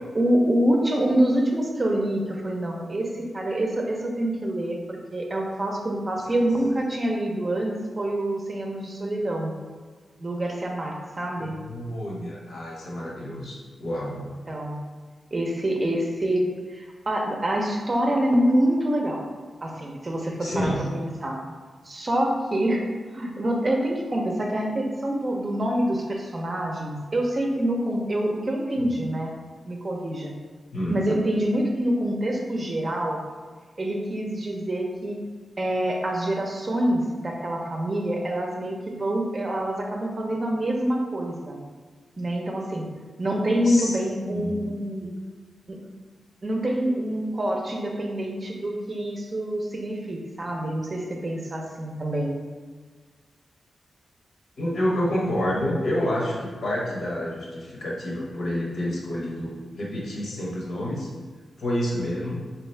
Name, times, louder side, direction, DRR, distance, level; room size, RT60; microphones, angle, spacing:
voice 1, 0.1-9.5 10.2-11.6 14.5-14.8 15.3-19.2 19.6-21.4 21.8-22.8 23.1-29.3 29.6-30.3 30.9-33.2 33.8-35.2 35.6-41.6 42.2-42.9 43.2-45.1 45.7-45.8 46.4-52.3, right 1 dB, 35° right, 0 dB, 0.6 m, -26 dB
voice 2, 11.4-14.3 20.4-20.9 30.7-31.0 43.6-44.6 54.6-61.1 61.6-62.4, equal, 75° left, -4 dB, 1.0 m, -29 dB
3.6 x 2.9 x 3.2 m, 1.5 s
wide cardioid pair, 95°, 0 cm